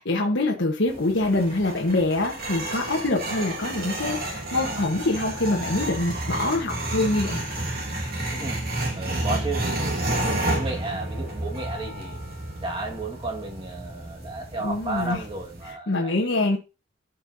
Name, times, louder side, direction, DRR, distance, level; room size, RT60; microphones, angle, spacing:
voice 1, 0.0-7.4 14.6-15.2 15.6-16.6, left 2 dB, 65° left, 1.3 m, -25 dB
sound 1, 0.9-15.7, right 1 dB, 50° right, 2.6 m, -31 dB
voice 2, 9.0-12.2 12.6-16.1, right 2 dB, 25° right, 1.8 m, -33 dB
12.5 x 5.6 x 2.7 m
head